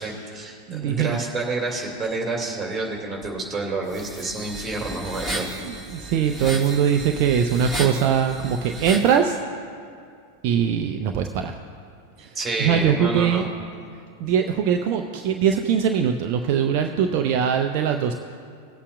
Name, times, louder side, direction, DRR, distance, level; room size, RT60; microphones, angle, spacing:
voice 1, 0.0-5.5 12.3-13.5, right 3 dB, 15° right, -1 dB, 2.2 m, -29 dB
voice 2, 0.7-1.2 5.6-9.4 10.4-11.5 12.2-13.5 14.2-18.1, right 8 dB, 45° right, 4 dB, 0.5 m, -22 dB
sound 1, 3.9-9.2, right 1 dB, 10° left, 2.3 m, -34 dB
19.5 x 8.4 x 2.3 m, 2.3 s
figure-of-eight pair, 90°, 0 cm